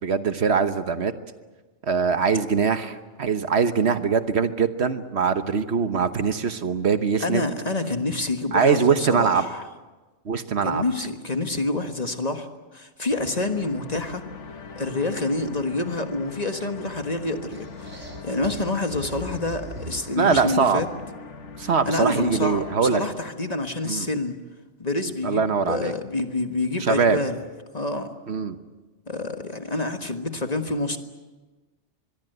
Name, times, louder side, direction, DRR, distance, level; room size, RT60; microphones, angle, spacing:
voice 1, 0.0-1.1 1.9-7.4 8.5-9.5 10.2-10.8 20.2-20.8 21.6-23.0 23.8-24.1 25.2-25.9 26.8-27.2 28.3-28.6, right 5 dB, 65° right, 10 dB, 1.4 m, -22 dB
voice 2, 7.2-9.6 10.6-12.5 12.7-14.3 14.7-20.9 21.6-24.4 24.8-27.4 27.7-28.1 29.1-31.0, left 2 dB, 35° left, 6 dB, 1.6 m, -27 dB
sound 1, 13.1-22.8, left 4 dB, 85° left, 1.6 m, -41 dB
sound 2, 17.5-21.1, right 1 dB, 85° right, 3.3 m, -40 dB
25.0 x 22.0 x 8.0 m, 1.2 s
omnidirectional pair, 1.2 m